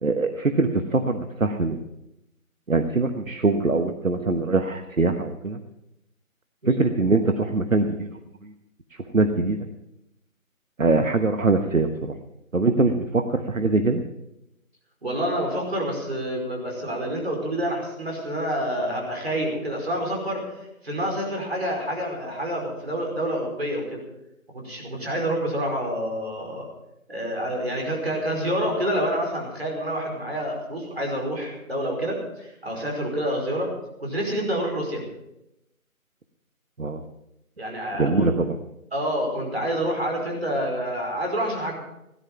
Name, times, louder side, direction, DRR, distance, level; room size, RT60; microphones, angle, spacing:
voice 1, 0.0-1.8 2.7-5.6 6.7-8.5 9.1-9.7 10.8-12.1 12.5-14.0 36.8-37.0 38.0-38.6, right 3 dB, 70° right, 7 dB, 1.2 m, -23 dB
voice 2, 15.0-20.5 20.8-24.0 24.5-26.7 27.1-33.7 34.0-35.0 37.6-38.3 38.9-41.7, equal, 45° right, 0 dB, 5.2 m, -28 dB
17.5 x 11.0 x 5.8 m, 0.86 s
figure-of-eight pair, 175°, 42 cm